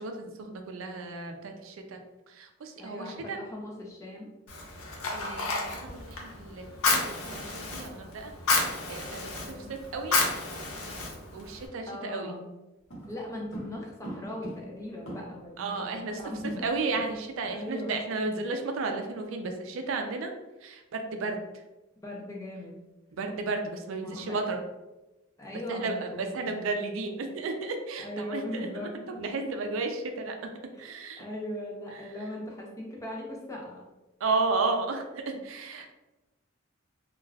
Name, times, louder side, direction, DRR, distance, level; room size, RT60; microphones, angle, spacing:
voice 1, 0.0-2.0 2.3-3.4 5.1-8.3 8.9-10.2 11.3-12.3 15.6-16.2 16.6-20.3 20.6-21.4 23.2-24.6 25.7-28.7 28.9-30.5 30.8-31.2 34.2-35.9, right 3 dB, 70° right, 5 dB, 0.4 m, -33 dB
voice 2, 2.8-4.3 9.3-9.7 11.9-12.4 13.1-16.7 17.5-18.1 22.0-22.8 24.0-24.4 25.4-26.6 28.0-29.2 30.7-30.9 31.2-33.8, left 1 dB, 15° left, -2 dB, 0.4 m, -39 dB
Fire, 4.5-11.7, left 3 dB, 85° left, 0.6 m, -31 dB
sound 1, 12.9-15.6 15.8-15.9 16.2-17.2 17.5-17.7 18.1-18.3, right 1 dB, 65° left, 1.1 m, -43 dB
2.3 x 2.2 x 3.3 m, 1.0 s
head